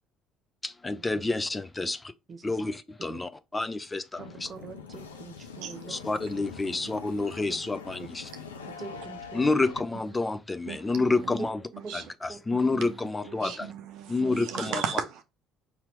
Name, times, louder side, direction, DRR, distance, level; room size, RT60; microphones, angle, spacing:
voice 1, 0.6-2.1 2.4-4.5 5.9-8.3 9.3-11.6 11.9-13.7 14.1-14.8, left 3 dB, 20° left, 0.4 m, -29 dB
sound 1, 4.2-9.8, left 5 dB, 85° left, 0.4 m, -44 dB
voice 2, 4.2-6.0 6.7-6.8 8.0-8.1 8.8-9.5 11.4-11.5 11.8-12.0 12.3-12.4 13.4-13.5, right 4 dB, 35° right, 1.0 m, -42 dB
voice 3, 10.7-11.5 11.7-12.1 12.5-15.2, right 8 dB, 65° right, 0.6 m, -37 dB
4.8 x 2.9 x 3.3 m
hypercardioid pair, 55°, 0 cm